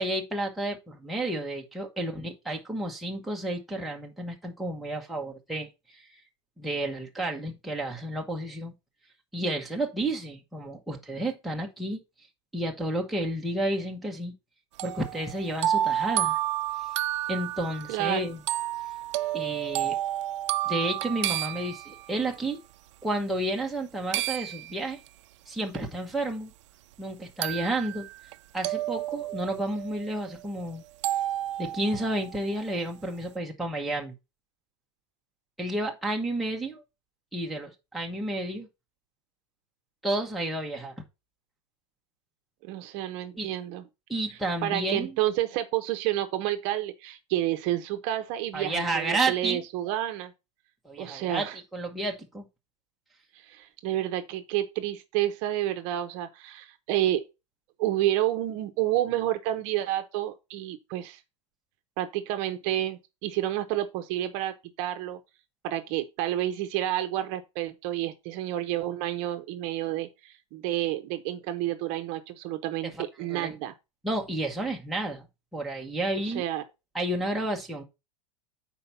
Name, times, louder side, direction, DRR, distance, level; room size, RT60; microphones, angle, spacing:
voice 1, 0.0-6.0 6.6-8.7 9.3-12.0 12.5-14.3 14.8-16.4 17.3-18.4 19.3-20.0 20.6-22.6 23.0-25.0 25.5-26.5 27.0-28.1 28.5-30.8 31.6-34.1 35.6-36.8 37.3-38.7 40.0-40.9 43.4-43.5 44.1-45.1 48.5-49.6 50.8-51.5 51.7-52.5 73.3-73.5 74.0-75.3 75.5-76.4 76.9-77.8, right 1 dB, ahead, 0.9 m, -31 dB
sound 1, 14.8-22.3 24.1-25.1 25.7-25.8 27.4-28.3 28.6-30.4 31.0-32.4, right 13 dB, 70° right, 0.5 m, -31 dB
voice 2, 17.9-18.2 42.6-43.8 44.6-50.3 51.0-51.6 53.4-57.2 57.8-61.2 62.0-65.2 65.6-72.9 73.2-73.7 76.2-76.6, right 13 dB, 40° right, 0.8 m, -29 dB
5.6 x 4.6 x 5.5 m
supercardioid pair, 160°, 16 cm